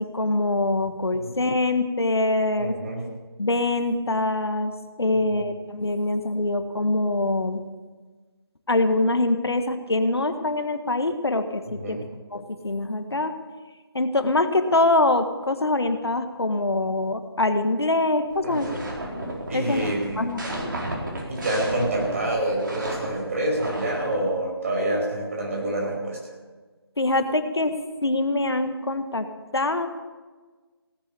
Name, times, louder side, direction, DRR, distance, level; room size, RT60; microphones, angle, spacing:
voice 1, 0.0-2.7 3.4-4.7 5.0-7.6 8.7-12.0 12.3-13.4 13.9-18.7 19.1-20.8 27.0-29.9, left 2 dB, 75° left, 8 dB, 1.6 m, -24 dB
voice 2, 2.6-3.0 5.1-5.4 11.6-12.1 18.4-18.9 19.5-20.4 21.3-26.2, right 1 dB, 35° right, -1 dB, 5.3 m, -27 dB
sound 1, 18.3-24.2, right 1 dB, 55° right, 4.3 m, -33 dB
17.5 x 9.8 x 7.0 m, 1.3 s
figure-of-eight pair, 160°, 13 cm